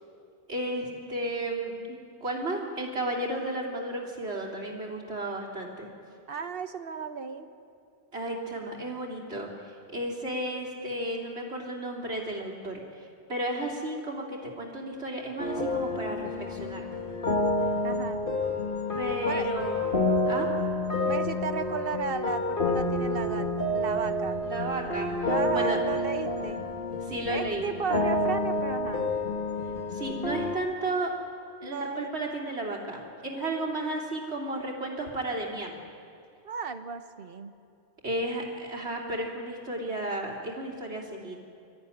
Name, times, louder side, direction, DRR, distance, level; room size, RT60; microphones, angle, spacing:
voice 1, 0.5-5.9 8.1-16.9 18.9-20.5 24.4-25.8 27.0-27.7 29.9-31.1 31.6-35.8 38.0-41.4, right 1 dB, 75° right, -1 dB, 3.4 m, -33 dB
voice 2, 6.3-7.5 17.8-18.2 19.2-19.5 21.1-24.4 25.3-26.7 27.3-29.1 31.6-32.1 36.4-37.5, right 6 dB, 55° right, 9 dB, 1.2 m, -34 dB
sound 1, 15.4-30.5, left 1 dB, 50° left, 1.8 m, -29 dB
24.5 x 14.0 x 9.9 m, 2.5 s
omnidirectional pair, 1.1 m